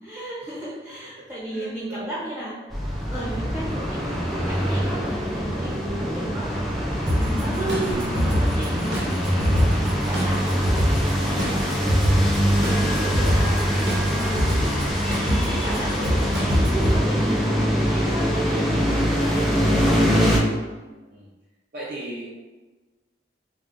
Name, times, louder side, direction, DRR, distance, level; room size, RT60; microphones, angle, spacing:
voice 1, 0.0-2.8 3.1-4.0 4.3-6.6 7.0-10.7 11.2-11.5 12.7-13.7 14.1-20.5, right 1 dB, 15° right, -10 dB, 0.9 m, -34 dB
voice 2, 1.2-2.2 11.4-12.2 12.7-13.4 19.3-19.8 20.1-20.6 21.1-21.3 21.7-22.3, right 1 dB, 50° right, -7 dB, 0.5 m, -40 dB
sound 1, 2.7-20.4, equal, ahead, 0.4 m, -23 dB
sound 2, 7.1-17.0, equal, 85° right, 0.8 m, -25 dB
sound 3, 7.8-8.4 12.2-12.8 14.7-15.2 16.4-16.7 17.1-17.2 17.4-17.5 19.7-20.3, equal, 55° left, 0.7 m, -39 dB
2.4 x 2.3 x 3.6 m, 1.2 s
head